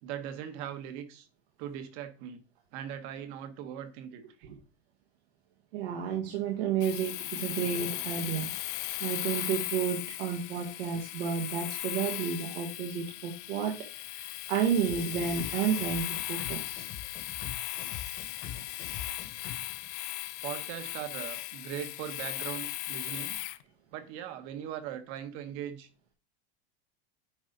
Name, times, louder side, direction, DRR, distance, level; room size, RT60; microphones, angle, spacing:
voice 1, 0.0-1.3 1.6-2.4 2.7-4.5 17.9-18.0 20.4-23.4 23.9-25.9, right 10 dB, 45° right, 1.1 m, -40 dB
voice 2, 5.7-16.9, right 7 dB, 85° right, 1.7 m, -32 dB
Domestic sounds home sounds, 6.8-23.6, left 18 dB, 55° left, 0.6 m, -37 dB
sound 1, 14.7-20.1, left 8 dB, 30° left, 1.3 m, -44 dB
9.6 x 4.7 x 3.8 m
supercardioid pair, 175°, 30 cm